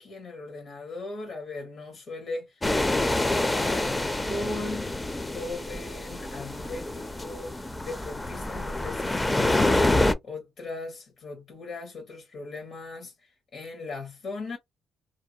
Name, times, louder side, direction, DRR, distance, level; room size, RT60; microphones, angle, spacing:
voice 1, 0.0-2.6 2.9-9.8 10.2-13.1 13.5-14.6, left 2 dB, 60° left, 1.1 m, -38 dB
sound 1, 2.6-10.1, left 2 dB, 15° left, 0.4 m, -27 dB
2.6 x 2.1 x 2.6 m
cardioid pair, 90°, 0 cm